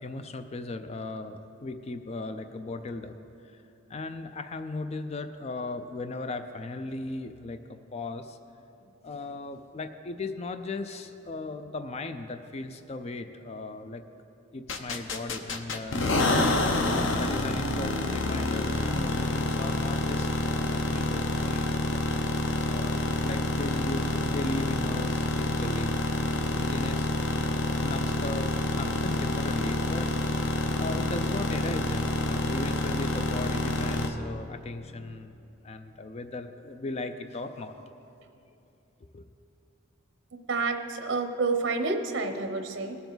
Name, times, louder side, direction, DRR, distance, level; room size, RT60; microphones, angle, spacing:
voice 1, 0.0-3.2 3.4-3.6 3.9-8.4 8.8-14.0 14.5-16.2 16.9-21.7 22.2-27.5 27.8-30.1 30.8-35.4 35.6-37.7 39.1-39.3, left 2 dB, 35° left, 8 dB, 0.4 m, -37 dB
sound 1, 14.7-34.1, left 2 dB, 85° left, 0.8 m, -28 dB
voice 2, 40.5-43.0, right 3 dB, 85° right, 6 dB, 0.8 m, -29 dB
19.0 x 6.9 x 3.9 m, 2.7 s
head